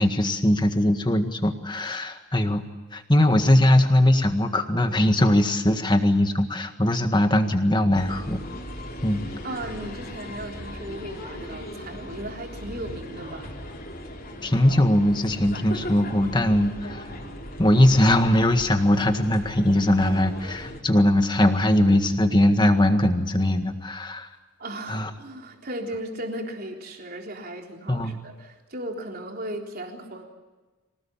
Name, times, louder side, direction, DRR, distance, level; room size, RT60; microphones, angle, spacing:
voice 1, 0.0-2.7 2.9-8.4 9.0-9.3 14.4-17.1 17.6-24.3 24.9-25.1 27.9-28.2, left 1 dB, 20° left, 7 dB, 1.8 m, -20 dB
sound 1, 7.9-20.8, left 1 dB, 45° left, 4.2 m, -38 dB
voice 2, 9.4-13.5 24.6-30.3, right 1 dB, 45° right, 1 dB, 3.8 m, -36 dB
26.0 x 18.5 x 8.7 m, 1.2 s
head